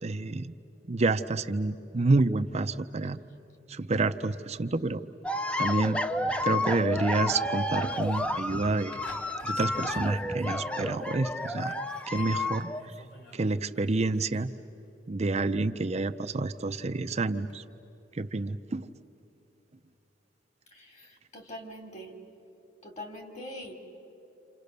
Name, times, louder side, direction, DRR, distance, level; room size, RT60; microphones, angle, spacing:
voice 1, 0.0-0.5 0.9-3.2 3.7-5.0 5.6-6.0 6.4-9.0 9.4-11.7 12.1-12.9 13.3-14.5 15.1-17.6 18.1-18.9, right 3 dB, 35° right, 8 dB, 0.6 m, -28 dB
sound 1, 5.2-12.8, left 1 dB, 5° left, 0.6 m, -31 dB
sound 2, 7.6-11.1 11.4-14.5 17.1-17.2, left 1 dB, 70° left, 3.4 m, -52 dB
voice 2, 20.7-22.1 22.8-23.7, equal, 40° left, 4 dB, 3.0 m, -43 dB
28.0 x 28.0 x 6.7 m, 2.9 s
head